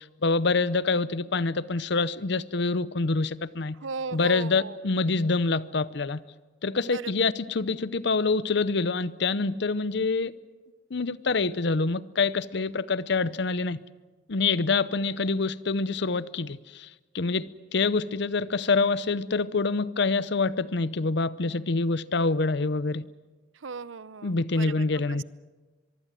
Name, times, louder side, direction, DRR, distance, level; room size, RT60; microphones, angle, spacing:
voice 1, 0.0-3.8 4.1-6.2 6.6-10.3 10.9-13.8 14.3-16.9 17.1-23.1 24.2-25.2, left 3 dB, 60° left, 0.7 m, -26 dB
voice 2, 3.8-4.8 6.9-7.3 23.6-24.7 25.1-25.2, right 4 dB, 80° right, 0.7 m, -37 dB
24.0 x 23.5 x 7.6 m
head